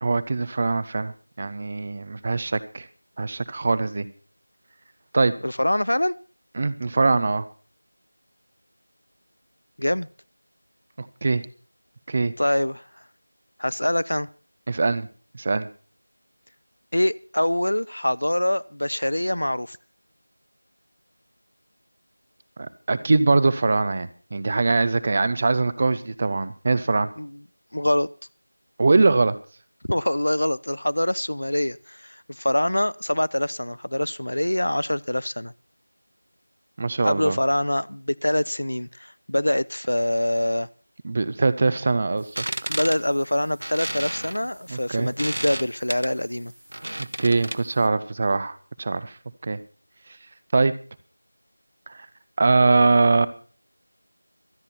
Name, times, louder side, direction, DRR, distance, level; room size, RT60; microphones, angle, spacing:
voice 1, 0.0-2.9 3.2-4.1 5.1-5.3 6.6-7.5 11.0-11.4 12.1-12.3 14.7-15.1 15.3-15.7 22.6-27.1 28.8-29.4 36.8-37.4 41.0-42.4 44.7-45.1 47.2-49.1 49.4-49.6 50.5-50.7 52.4-53.3, right 3 dB, 15° right, 0.6 m, -22 dB
voice 2, 5.4-6.2 9.8-10.1 12.4-12.9 13.6-14.3 16.9-19.8 27.2-27.4 27.7-28.1 29.9-35.5 37.0-40.7 42.7-46.5, left 1 dB, 85° left, 0.7 m, -24 dB
sound 1, 42.2-47.8, right 1 dB, 65° right, 1.4 m, -33 dB
24.0 x 8.9 x 4.2 m
figure-of-eight pair, 180°, 0 cm